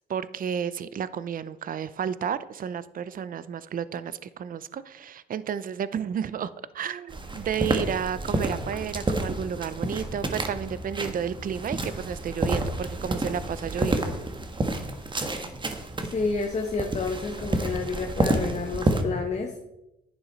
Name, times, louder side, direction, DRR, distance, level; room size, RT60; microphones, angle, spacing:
voice 1, 0.1-14.1, right 8 dB, 45° right, 16 dB, 0.6 m, -32 dB
sound 1, 7.1-19.0, right 2 dB, 25° right, 1.4 m, -30 dB
voice 2, 16.0-19.6, left 4 dB, 35° left, 2 dB, 1.2 m, -30 dB
10.5 x 10.5 x 4.1 m, 0.94 s
cardioid pair, 90°, 20 cm